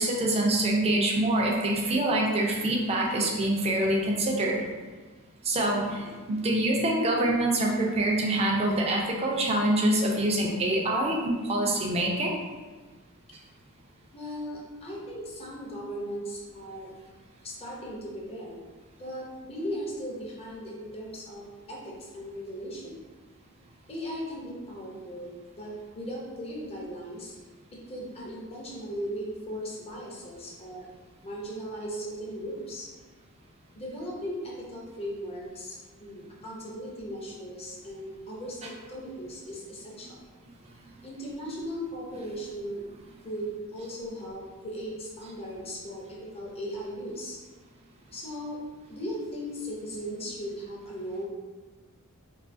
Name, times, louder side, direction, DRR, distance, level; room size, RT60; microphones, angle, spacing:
voice 1, 0.0-4.6 5.4-12.3, right 1 dB, 30° right, -1 dB, 0.4 m, -25 dB
voice 2, 14.1-16.9 17.4-18.6 19.0-21.4 21.7-22.9 23.9-27.3 27.9-30.9 31.2-32.9 33.7-40.2 41.0-42.9 43.2-47.4 48.1-48.6 48.9-51.2, equal, 30° left, -4 dB, 0.5 m, -37 dB
2.3 x 2.3 x 2.5 m, 1.3 s
head